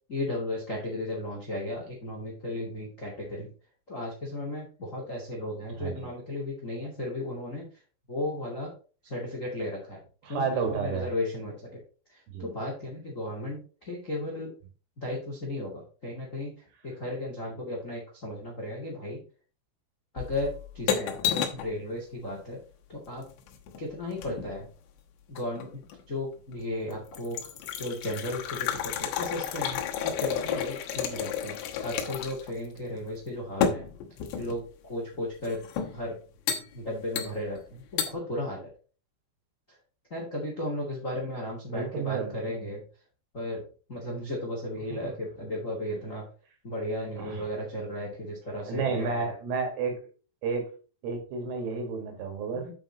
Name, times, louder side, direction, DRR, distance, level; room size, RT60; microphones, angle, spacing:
voice 1, 0.1-3.5 3.9-7.7 8.1-8.7 9.0-11.8 12.1-14.5 15.0-16.5 16.8-19.2 20.1-22.6 22.9-23.3 23.8-24.7 25.3-25.8 26.1-27.5 27.7-31.6 31.8-33.9 34.4-35.6 35.9-36.2 36.5-38.7 39.7-39.8 40.1-42.8 43.3-43.6 43.9-46.3 46.6-49.3 52.5-52.7, left 1 dB, 45° left, -2 dB, 1.0 m, -35 dB
voice 2, 5.8-6.1 10.2-11.1 12.3-12.5 41.7-42.3 47.2-47.5 48.7-50.0 50.4-50.7 51.0-52.7, right 5 dB, 75° right, 3 dB, 4.5 m, -31 dB
sound 1, 20.2-21.7 23.2-24.6 25.4-26.0 26.5-26.6 26.9-32.5 32.8-32.9 33.6-34.6 35.4-36.0 36.5-36.7 37.2-37.6 38.0-38.1, left 8 dB, 75° left, 3.0 m, -31 dB
8.9 x 5.3 x 4.1 m, 0.37 s
omnidirectional pair, 5.9 m